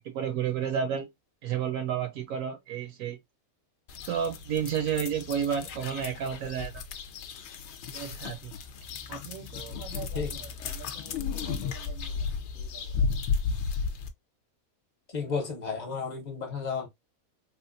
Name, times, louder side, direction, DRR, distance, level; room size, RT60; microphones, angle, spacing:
voice 1, 0.0-1.1 1.4-3.2 4.1-6.8 7.9-8.5 9.1-12.3 12.5-13.1, right 8 dB, 75° right, 0.9 m, -33 dB
sound 1, 3.9-14.1, left 5 dB, 65° left, 0.7 m, -34 dB
voice 2, 15.1-16.9, left 5 dB, 35° left, 0.9 m, -33 dB
3.5 x 2.4 x 2.5 m
omnidirectional pair, 1.5 m